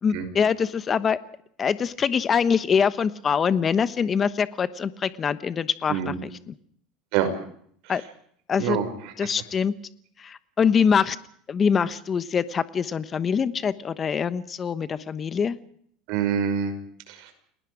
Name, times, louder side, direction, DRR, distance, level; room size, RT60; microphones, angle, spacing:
voice 1, 0.0-1.2 1.6-6.5 7.9-8.0 8.5-8.8 9.2-9.7 10.2-11.2 11.5-15.6, left 6 dB, 25° left, 14 dB, 1.1 m, -24 dB
voice 2, 8.6-9.1 16.1-16.7 17.1-17.3, right 8 dB, 65° right, 7 dB, 5.8 m, -26 dB
30.0 x 20.0 x 5.0 m, 0.62 s
supercardioid pair, 145°, 0 cm